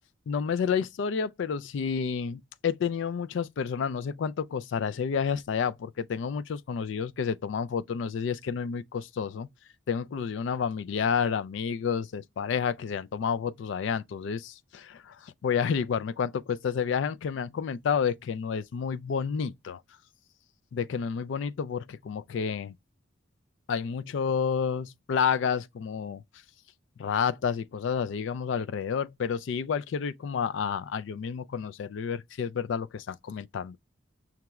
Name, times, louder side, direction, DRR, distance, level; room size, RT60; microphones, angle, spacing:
voice 1, 0.3-9.5 9.9-19.8 20.7-22.7 23.7-26.2 27.0-33.8, left 6 dB, 70° left, 0.3 m, -30 dB
5.9 x 2.3 x 2.9 m
head